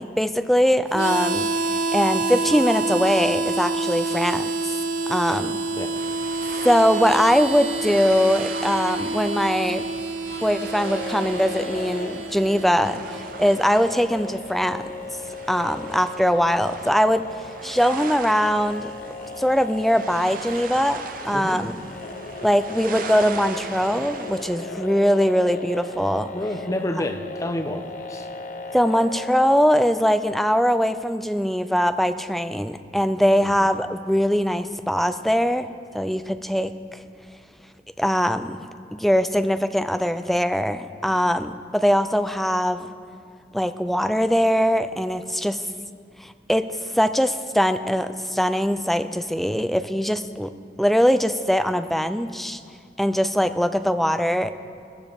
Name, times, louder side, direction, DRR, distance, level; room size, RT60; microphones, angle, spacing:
voice 1, 0.0-1.5 1.9-4.8 5.1-5.6 6.6-9.8 10.4-14.9 15.5-17.2 17.6-18.9 19.4-21.7 22.4-26.3 28.7-37.0 38.0-38.7 38.9-42.9 43.5-45.6 46.2-50.5 50.8-52.6 53.0-54.5, equal, ahead, 10 dB, 0.4 m, -21 dB
Harmonica, 0.9-13.6, right 3 dB, 85° right, 1.0 m, -28 dB
sound 1, 5.9-24.7, right 5 dB, 50° right, 0.7 m, -39 dB
sound 2, 10.6-29.6, left 2 dB, 45° left, 0.8 m, -37 dB
voice 2, 21.3-21.6 26.3-28.3 33.4-33.7, left 1 dB, 20° left, 6 dB, 0.8 m, -29 dB
19.0 x 15.0 x 3.5 m, 2.2 s
head